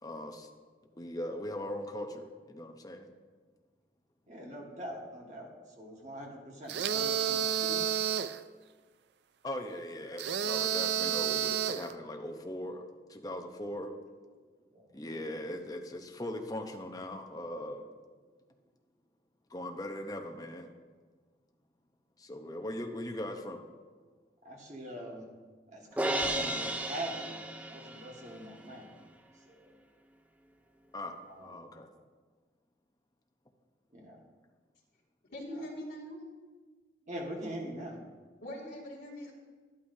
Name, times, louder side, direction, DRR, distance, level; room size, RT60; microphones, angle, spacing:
voice 1, 0.0-0.5 0.9-3.1 9.4-12.8 13.1-13.9 14.9-17.9 19.5-20.7 22.2-23.6 30.9-31.1 31.4-31.9, left 1 dB, 20° left, 3 dB, 0.8 m, -39 dB
voice 2, 4.3-5.5 5.8-7.9 14.7-15.0 24.4-25.3 25.7-29.0 29.5-29.7 31.3-31.7 33.9-34.2 37.1-38.0, right 1 dB, 40° right, -1 dB, 1.7 m, -43 dB
sound 1, 6.7-8.4 10.2-11.9, right 9 dB, 75° right, 0.4 m, -30 dB
Crash cymbal, 26.0-28.2, right 1 dB, 10° right, 0.5 m, -33 dB
voice 3, 35.3-36.2 38.4-39.3, equal, 75° left, -5 dB, 2.5 m, -42 dB
11.5 x 11.0 x 2.7 m, 1.4 s
head